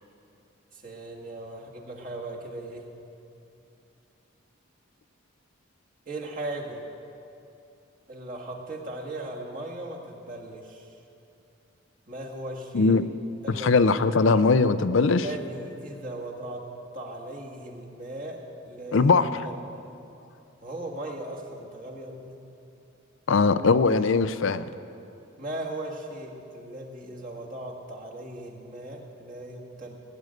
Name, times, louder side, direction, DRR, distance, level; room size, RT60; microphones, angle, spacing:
voice 1, 0.7-2.9 6.1-6.8 8.1-10.9 12.1-13.0 13.4-13.7 15.0-16.6 16.9-18.4 18.7-19.1 19.4-19.7 20.6-22.4 25.4-30.0, right 1 dB, 40° right, -1 dB, 1.9 m, -38 dB
voice 2, 13.5-15.3 18.9-19.4 23.3-24.6, left 4 dB, 70° left, 13 dB, 0.5 m, -20 dB
17.0 x 7.8 x 9.2 m, 2.7 s
head